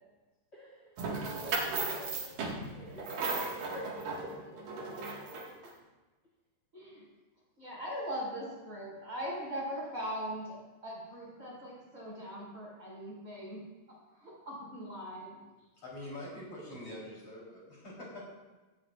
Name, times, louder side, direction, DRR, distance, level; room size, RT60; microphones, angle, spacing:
voice 1, 0.5-5.7, equal, 20° left, -5 dB, 2.2 m, -52 dB
sound 1, 1.0-5.7, right 3 dB, 85° right, 3.7 m, -36 dB
voice 2, 6.7-7.0 7.6-13.7 14.2-15.4, equal, 25° right, -5 dB, 5.7 m, -40 dB
voice 3, 15.6-18.2, left 1 dB, 40° left, -5 dB, 4.6 m, -45 dB
18.5 x 15.5 x 2.5 m, 1.2 s
omnidirectional pair, 3.9 m